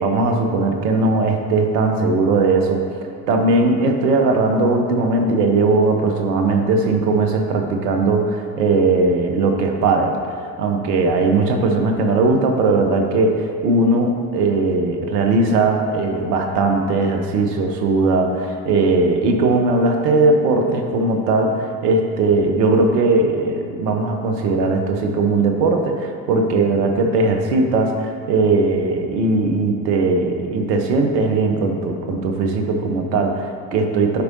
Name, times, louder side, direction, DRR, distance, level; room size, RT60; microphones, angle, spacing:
voice 1, 0.0-2.8 3.3-10.2 10.6-34.2, right 3 dB, 70° right, 4 dB, 0.9 m, -18 dB
11.0 x 4.5 x 2.7 m, 2.3 s
figure-of-eight pair, 55°, 49 cm